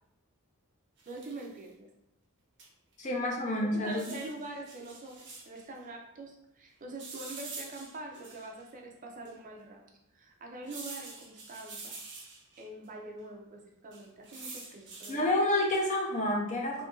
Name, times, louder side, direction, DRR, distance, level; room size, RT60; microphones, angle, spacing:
sound 1, 1.0-1.6 2.6-2.7 2.9-3.0 3.8-5.7 7.0-8.6 9.2-9.3 10.6-12.6 13.9-15.2 15.7-16.1, right 3 dB, 55° right, 0.8 m, -46 dB
voice 1, 1.1-1.9 3.5-9.8 10.1-12.0 12.6-15.2, right 2 dB, 35° right, 1 dB, 0.5 m, -44 dB
voice 2, 3.0-4.0 15.1-16.9, left 1 dB, 35° left, -2 dB, 0.6 m, -29 dB
2.7 x 2.5 x 3.7 m, 0.83 s
head